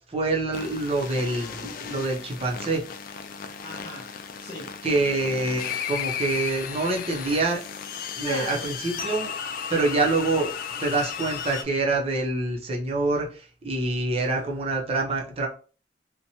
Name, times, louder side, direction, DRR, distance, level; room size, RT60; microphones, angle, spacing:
voice 1, 0.1-2.8 4.8-7.6 8.1-9.3 9.7-10.5 10.8-15.5, right 2 dB, 35° right, 0 dB, 0.7 m, -26 dB
sound 1, 0.5-11.6, left 7 dB, 50° left, 0.3 m, -35 dB
voice 2, 3.4-4.1 4.4-4.7 8.2-8.7 14.2-14.6, left 1 dB, 35° left, -4 dB, 0.7 m, -38 dB
2.9 x 2.1 x 2.7 m, 0.37 s
head